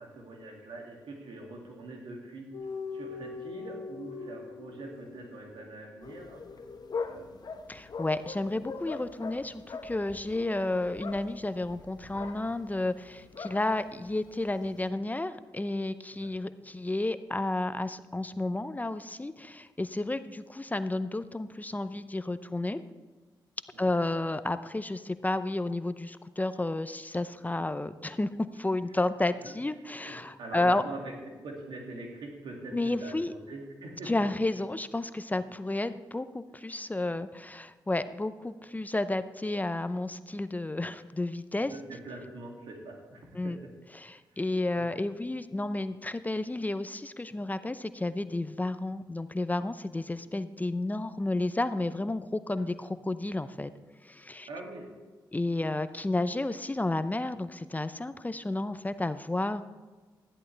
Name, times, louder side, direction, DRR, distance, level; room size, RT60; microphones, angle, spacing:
voice 1, 0.0-2.5 2.9-6.4 7.0-7.5 16.2-16.5 23.7-23.9 29.4-29.5 30.0-31.1 31.4-34.3 41.6-43.5 44.3-44.9 54.5-54.9, right 2 dB, 80° right, 0 dB, 2.4 m, -43 dB
sound 1, 2.5-9.3 9.6-9.8, left 4 dB, 85° left, 1.9 m, -44 dB
sound 2, 6.0-14.9, left 4 dB, 50° left, 0.9 m, -42 dB
voice 2, 7.7-22.8 23.8-30.8 32.7-33.3 34.1-41.7 43.3-43.6 44.0-53.7 54.0-54.5 55.3-59.6, left 2 dB, 20° left, 12 dB, 0.6 m, -31 dB
13.0 x 11.0 x 3.4 m, 1.4 s
supercardioid pair, 50°, 9 cm